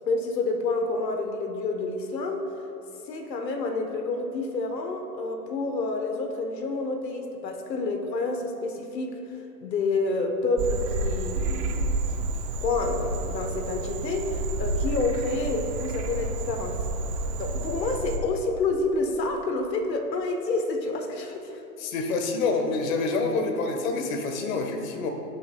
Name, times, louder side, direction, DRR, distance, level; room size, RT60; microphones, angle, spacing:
voice 1, 0.0-2.4 3.1-9.1 9.6-12.3 12.5-16.8 17.4-21.6, left 3 dB, 85° left, 4 dB, 1.2 m, -29 dB
Frog, 10.6-18.2, right 2 dB, 40° right, 0.8 m, -30 dB
voice 2, 21.8-25.1, left 3 dB, 55° left, 4 dB, 1.3 m, -27 dB
17.5 x 6.7 x 2.2 m, 2.9 s
hypercardioid pair, 135°, 49 cm